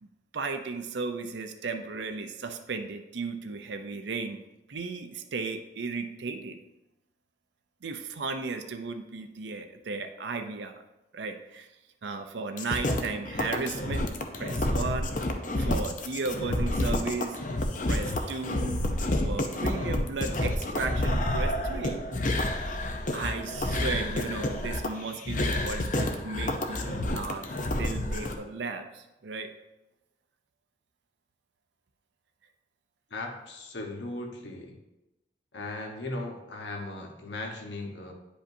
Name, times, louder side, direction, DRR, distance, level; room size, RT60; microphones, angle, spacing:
voice 1, 0.3-4.4 4.7-6.6 7.8-10.8 11.1-11.7 12.0-14.1 14.4-15.1 15.6-17.4 17.8-18.8 19.2-22.0 22.9-29.5, right 4 dB, 75° right, 6 dB, 0.5 m, -35 dB
sound 1, 12.6-28.3, left 1 dB, 45° left, 0.6 m, -29 dB
voice 2, 33.1-34.7 35.5-38.1, left 2 dB, 80° left, 2 dB, 1.1 m, -37 dB
9.8 x 5.0 x 2.7 m, 0.95 s
head